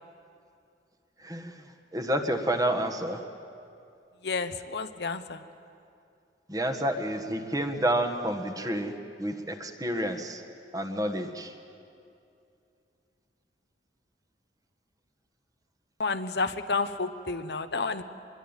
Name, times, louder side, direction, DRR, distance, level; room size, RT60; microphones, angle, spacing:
voice 1, 1.2-1.6 1.9-3.2 6.5-8.9 9.2-10.4 10.7-11.5, right 1 dB, 20° right, 6 dB, 1.5 m, -29 dB
voice 2, 4.2-5.4 16.0-18.0, left 4 dB, 60° left, 9 dB, 1.0 m, -30 dB
24.5 x 22.0 x 9.0 m, 2.6 s
head